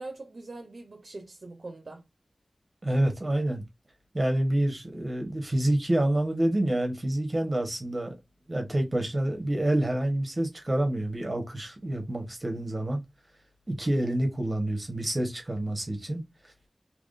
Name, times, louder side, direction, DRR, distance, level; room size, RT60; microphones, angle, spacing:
voice 1, 0.0-2.0, right 2 dB, 65° right, 0.9 m, -42 dB
voice 2, 2.8-3.6 4.1-8.1 8.5-13.0 13.7-16.2, right 1 dB, 35° right, 1.2 m, -27 dB
3.6 x 2.9 x 2.6 m
wide cardioid pair, 75°, 0 cm